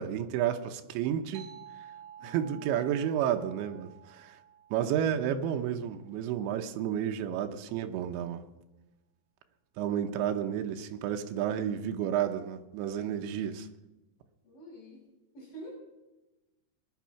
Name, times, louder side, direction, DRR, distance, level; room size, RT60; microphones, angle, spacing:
voice 1, 0.0-1.5 1.8-1.9 2.2-4.4 4.7-8.5 9.8-13.7, right 9 dB, 90° right, 3.3 m, -31 dB
sound 1, 1.3-6.3, right 9 dB, 70° right, 3.9 m, -52 dB
voice 2, 2.2-2.6 4.7-5.2 14.4-15.0 15.3-15.7, equal, 55° left, 7.5 m, -49 dB
20.5 x 11.5 x 5.8 m
omnidirectional pair, 5.1 m